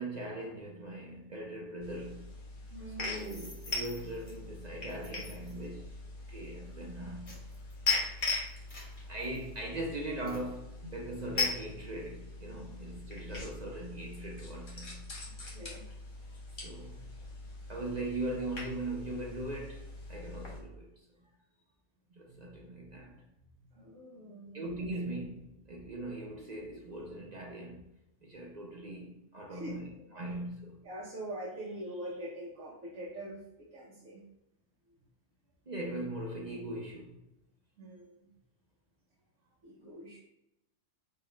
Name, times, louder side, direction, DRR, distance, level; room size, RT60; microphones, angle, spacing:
voice 1, 0.0-2.3 3.0-5.9 6.3-7.3 8.8-15.1 16.6-17.1 17.7-20.9 22.1-23.2 24.5-27.8 28.2-29.9 30.1-30.8 35.7-37.2, right 1 dB, 45° right, 0.6 m, -40 dB
sound 1, 1.8-20.6, left 3 dB, 40° left, 1.1 m, -40 dB
voice 2, 2.7-3.4 10.8-10.9 15.5-15.9 20.2-20.3 23.7-24.6 29.5-29.8 30.8-34.2 37.8-38.2 39.6-40.2, right 1 dB, 80° right, 1.3 m, -43 dB
sound 2, 3.1-4.3 4.9-5.6 6.3-6.5 6.9-9.8 10.3-10.5, left 1 dB, 25° left, 1.3 m, -54 dB
5.0 x 4.0 x 2.3 m
omnidirectional pair, 1.3 m